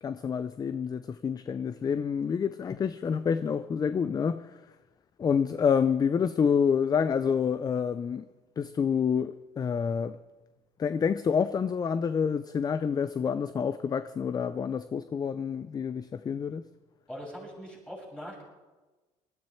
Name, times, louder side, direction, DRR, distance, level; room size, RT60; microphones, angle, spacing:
voice 1, 0.0-4.5 5.2-8.3 8.6-10.2 10.8-16.6, left 6 dB, 25° left, 0.4 m, -28 dB
voice 2, 17.1-18.4, equal, 5° left, 6.2 m, -41 dB
19.5 x 13.0 x 4.4 m
cardioid pair, 115°, 16 cm